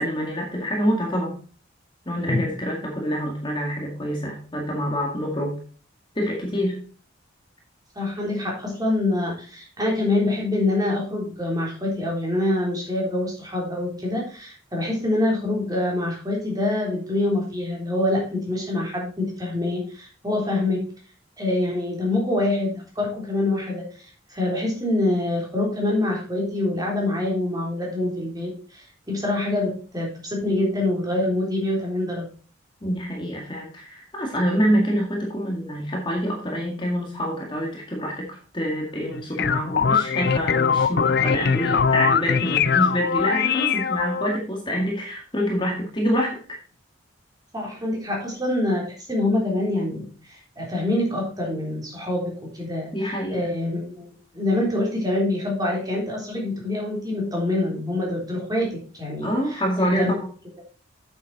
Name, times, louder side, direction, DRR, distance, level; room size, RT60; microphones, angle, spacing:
voice 1, 0.0-1.4 2.1-5.6 6.2-6.8 32.8-46.6 52.9-53.4 59.2-60.2, equal, 25° left, 0 dB, 1.9 m, -26 dB
voice 2, 8.0-20.9 21.4-23.9 24.3-32.3 47.5-60.2, left 2 dB, 20° right, -2 dB, 3.6 m, -25 dB
sound 1, 39.1-44.4, left 6 dB, 50° left, 0.5 m, -22 dB
8.4 x 7.5 x 4.1 m, 0.40 s
head